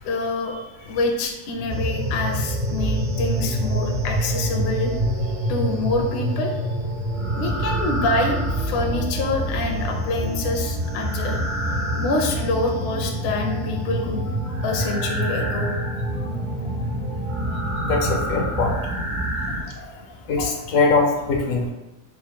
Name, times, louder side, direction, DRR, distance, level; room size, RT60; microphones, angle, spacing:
voice 1, 0.0-4.9 5.5-6.6 7.3-11.6 12.0-14.3 14.6-15.7 19.6-20.2, left 2 dB, 60° left, 2 dB, 0.8 m, -26 dB
sound 1, 1.7-19.6, right 1 dB, 60° right, 1.1 m, -26 dB
voice 2, 17.8-18.7 20.3-21.7, left 3 dB, 85° left, 1 dB, 1.1 m, -21 dB
4.2 x 2.1 x 4.5 m, 1.0 s
omnidirectional pair, 1.4 m